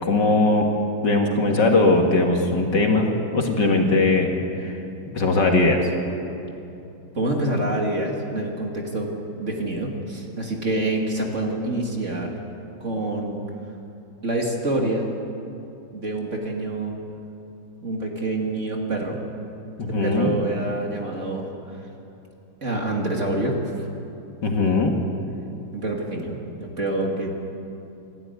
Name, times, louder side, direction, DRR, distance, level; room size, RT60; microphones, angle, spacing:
voice 1, 0.0-0.7 1.0-3.1 3.3-4.3 4.6-4.7 5.1-5.9 19.8-20.3 24.4-24.9, left 2 dB, 55° left, 2 dB, 2.5 m, -19 dB
voice 2, 7.1-12.3 12.8-13.4 14.2-15.1 15.9-17.0 17.8-19.2 19.9-21.5 22.6-23.5 25.7-27.3, right 2 dB, 35° right, 0 dB, 2.5 m, -26 dB
27.0 x 12.0 x 9.7 m, 2.8 s
omnidirectional pair, 2.3 m